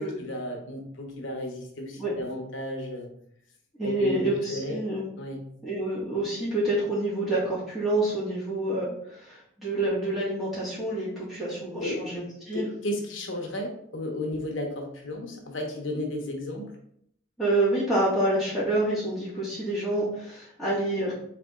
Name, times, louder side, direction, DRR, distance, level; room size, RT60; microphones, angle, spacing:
voice 1, 0.0-3.1 3.8-4.9 5.2-5.4 11.8-12.0 12.5-16.7, left 1 dB, 80° left, 2 dB, 0.8 m, -33 dB
voice 2, 3.8-5.0 5.6-12.7 17.4-21.1, right 1 dB, ahead, -9 dB, 1.7 m, -28 dB
3.7 x 3.3 x 3.6 m, 0.70 s
head